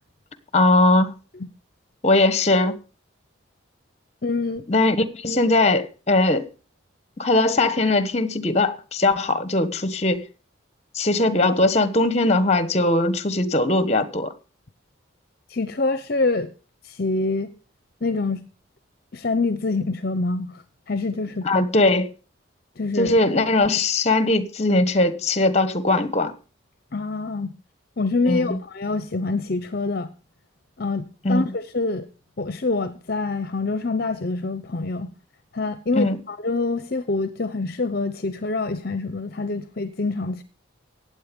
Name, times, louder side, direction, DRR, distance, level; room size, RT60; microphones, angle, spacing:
voice 1, 0.5-1.1 2.0-2.8 4.7-6.4 7.2-10.2 10.9-14.3 21.4-22.1 23.0-26.3 28.3-28.6 31.2-31.4 35.9-36.2, left 2 dB, 35° left, 1.2 m, -20 dB
voice 2, 4.2-4.6 15.5-16.5 16.8-17.5 18.0-18.4 19.1-21.7 22.8-23.2 26.9-27.5 28.0-30.1 30.8-32.1 32.4-35.1 35.5-40.4, left 3 dB, 50° left, 0.7 m, -26 dB
15.5 x 9.1 x 5.3 m
head